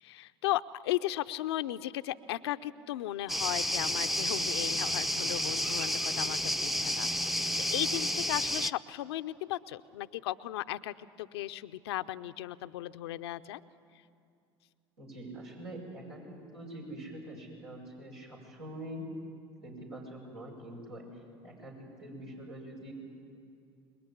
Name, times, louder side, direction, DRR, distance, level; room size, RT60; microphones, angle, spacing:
voice 1, 0.0-13.6, left 15 dB, 80° left, 11 dB, 0.7 m, -36 dB
sound 1, 3.3-8.7, left 1 dB, ahead, 0.7 m, -31 dB
voice 2, 15.0-19.1 19.6-22.9, right 1 dB, 85° right, -3 dB, 7.3 m, -45 dB
26.5 x 21.5 x 10.0 m, 2.4 s
hypercardioid pair, 70°, 13 cm